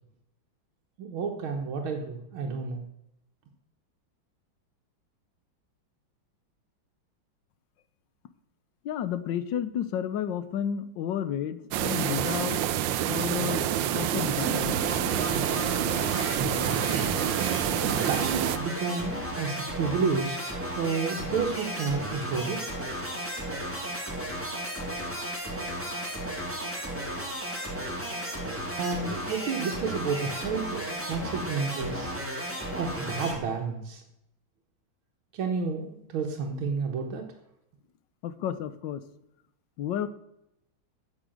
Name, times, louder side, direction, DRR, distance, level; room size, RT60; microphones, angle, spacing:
voice 1, 1.0-2.8 16.4-17.1 17.8-22.6 23.2-23.3 28.8-32.2 32.8-34.0 35.3-37.2, right 5 dB, 90° right, 2 dB, 1.9 m, -31 dB
voice 2, 8.8-12.6 13.1-14.7 38.2-39.0 39.8-40.1, left 9 dB, 70° left, 14 dB, 1.4 m, -31 dB
sound 1, 11.7-18.6, right 11 dB, 75° right, 1.3 m, -27 dB
sound 2, 14.3-33.4, right 1 dB, 5° right, 2.3 m, -34 dB
8.7 x 7.5 x 7.7 m, 0.82 s
omnidirectional pair, 2.2 m